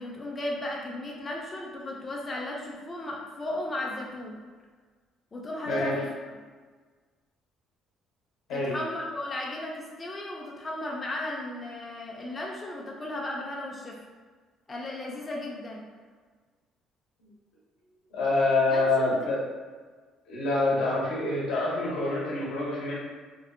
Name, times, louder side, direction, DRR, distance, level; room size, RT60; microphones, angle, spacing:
voice 1, 0.0-4.4 5.3-6.1 8.5-14.0 14.7-15.8 18.7-19.2, left 1 dB, 25° left, -2 dB, 0.3 m, -35 dB
voice 2, 5.7-6.0 8.5-8.8 17.2-17.3 18.1-19.4 20.3-23.0, left 2 dB, 85° left, -5 dB, 0.7 m, -26 dB
2.5 x 2.0 x 2.5 m, 1.5 s
cardioid pair, 120°, 0 cm